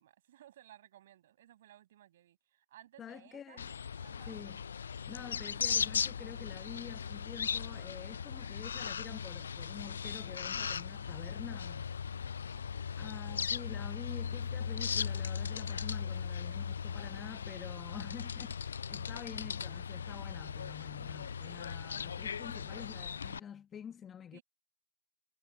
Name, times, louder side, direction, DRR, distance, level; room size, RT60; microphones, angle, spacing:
voice 1, 0.0-3.6 4.0-4.4 10.5-10.7 11.8-12.9 15.5-15.8 24.3-24.4, right 12 dB, 50° right, 6.4 m, -59 dB
voice 2, 3.0-3.7 4.3-4.6 5.1-11.9 13.0-24.4, left 8 dB, 15° left, 1.1 m, -48 dB
sound 1, 3.6-23.4, left 7 dB, 70° left, 0.3 m, -38 dB
hypercardioid pair, 135°, 0 cm